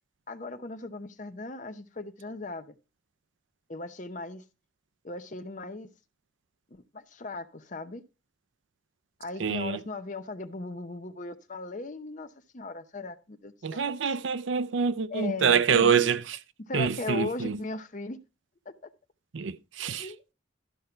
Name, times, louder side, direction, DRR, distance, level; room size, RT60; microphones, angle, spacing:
voice 1, 0.3-2.8 3.7-4.4 5.0-5.9 6.7-8.0 9.2-12.3 12.5-14.2 15.1-16.1 16.6-18.2 18.7-18.9 20.0-20.3, left 2 dB, 40° left, 0.8 m, -38 dB
voice 2, 9.4-9.8 13.6-16.4 16.7-17.6 19.3-20.1, right 6 dB, 75° right, 0.5 m, -26 dB
12.5 x 5.5 x 4.4 m
head